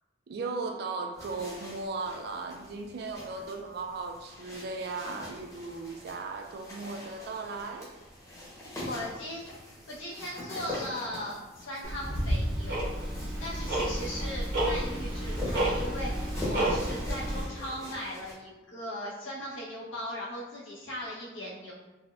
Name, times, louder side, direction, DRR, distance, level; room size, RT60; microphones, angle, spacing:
voice 1, 0.3-7.9, right 3 dB, 55° right, 5 dB, 0.3 m, -37 dB
sound 1, 1.1-18.3, left 1 dB, 15° left, 0.7 m, -44 dB
voice 2, 8.8-21.7, left 1 dB, 90° left, -5 dB, 0.8 m, -38 dB
Tick-tock, 11.8-17.4, right 1 dB, 80° right, 1.1 m, -30 dB
4.0 x 2.1 x 2.3 m, 1.1 s
head